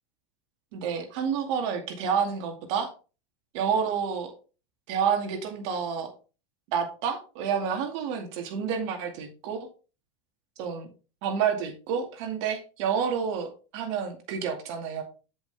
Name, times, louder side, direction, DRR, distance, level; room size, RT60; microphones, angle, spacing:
voice 1, 0.7-2.9 3.5-4.3 4.9-6.1 6.7-9.6 10.6-10.9 11.2-15.0, right 7 dB, 65° right, 4 dB, 2.2 m, -29 dB
7.8 x 7.7 x 3.4 m, 0.34 s
supercardioid pair, 140°, 17 cm